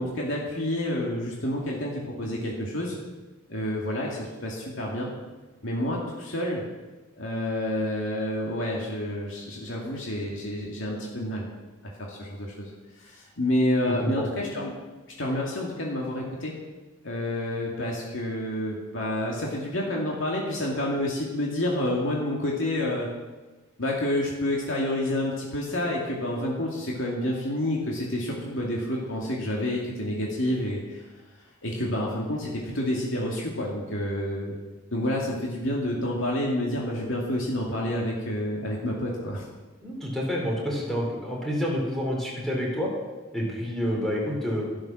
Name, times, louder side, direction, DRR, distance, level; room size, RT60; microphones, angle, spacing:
voice 1, 0.0-3.0 3.5-5.1 5.6-6.6 7.1-11.5 11.8-12.7 13.0-14.8 15.2-16.5 17.0-23.1 23.8-31.0 31.6-34.5 34.9-39.5, left 1 dB, 80° left, -3 dB, 2.4 m, -29 dB
voice 2, 39.8-42.9 43.3-44.6, equal, ahead, -3 dB, 3.7 m, -28 dB
12.0 x 12.0 x 6.1 m, 1.3 s
head